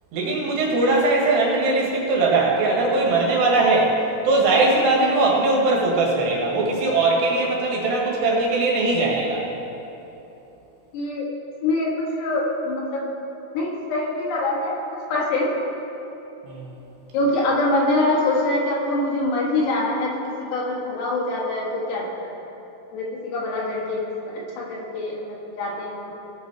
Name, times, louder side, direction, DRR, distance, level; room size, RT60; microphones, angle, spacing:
voice 1, 0.1-4.0 4.3-9.4 16.5-16.7, right 2 dB, 80° right, -3 dB, 3.8 m, -20 dB
voice 2, 10.9-11.3 11.6-13.3 13.5-15.5 17.1-22.3 22.9-26.1, left 2 dB, 75° left, -4 dB, 3.7 m, -24 dB
18.0 x 6.2 x 4.5 m, 3.0 s
omnidirectional pair, 4.9 m